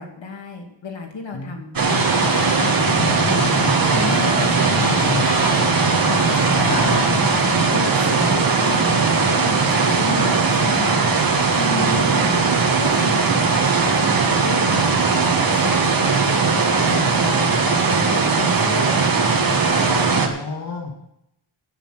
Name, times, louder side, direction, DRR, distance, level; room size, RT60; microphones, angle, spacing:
voice 1, 0.0-1.7 2.0-3.2 3.9-5.8 6.1-7.1 7.7-11.0 11.5-12.5 12.8-19.2, left 3 dB, 70° left, 2 dB, 2.3 m, -32 dB
sound 1, 1.8-20.3, right 4 dB, 45° right, 1.9 m, -19 dB
sound 2, 1.9-7.7, left 4 dB, 30° left, 0.7 m, -28 dB
voice 2, 6.6-7.1 19.8-21.0, left 3 dB, 50° left, 0 dB, 2.2 m, -29 dB
9.9 x 8.7 x 7.8 m, 0.81 s
wide cardioid pair, 175°, 46 cm